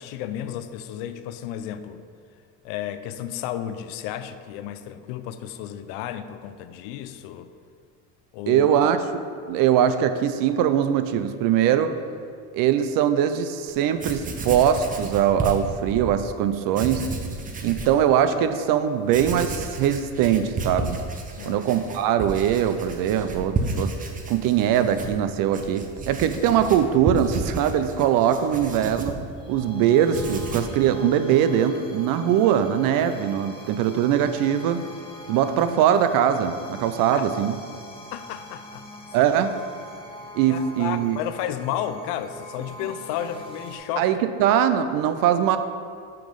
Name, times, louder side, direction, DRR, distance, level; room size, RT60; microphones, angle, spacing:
voice 1, 0.0-2.0 2.6-7.5 8.3-8.7 21.4-21.7 37.1-37.2 38.1-38.8 40.5-44.1, left 10 dB, 75° left, 10 dB, 0.6 m, -32 dB
voice 2, 8.5-11.9 12.5-17.1 17.6-21.0 21.5-23.9 24.3-29.2 29.5-34.8 35.3-37.6 39.1-39.5 40.3-41.2 44.0-45.6, right 9 dB, 60° right, 10 dB, 0.6 m, -21 dB
Writing, 13.7-13.8 14.0-16.2 16.7-18.0 18.4-18.5 19.0-29.7 30.0-30.8, right 3 dB, 20° right, 0.7 m, -32 dB
sound 1, 29.1-43.8, left 1 dB, 15° left, 1.2 m, -43 dB
5.9 x 5.0 x 5.3 m, 2.3 s
cardioid pair, 120°, 38 cm